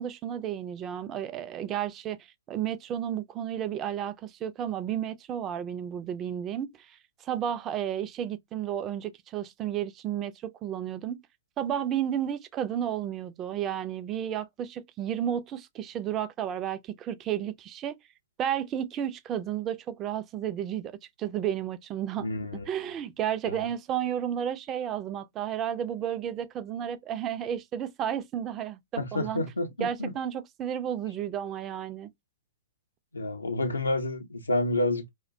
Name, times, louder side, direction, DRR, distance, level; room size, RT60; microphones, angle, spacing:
voice 1, 0.0-2.2 2.5-11.2 11.6-18.0 18.4-22.3 22.5-29.4 29.8-32.1, right 10 dB, 25° right, 0.3 m, -32 dB
voice 2, 22.2-22.7 23.5-23.7 29.0-30.1 33.1-35.1, left 2 dB, 80° left, 0.6 m, -29 dB
2.4 x 2.1 x 2.5 m
figure-of-eight pair, 110°, 0 cm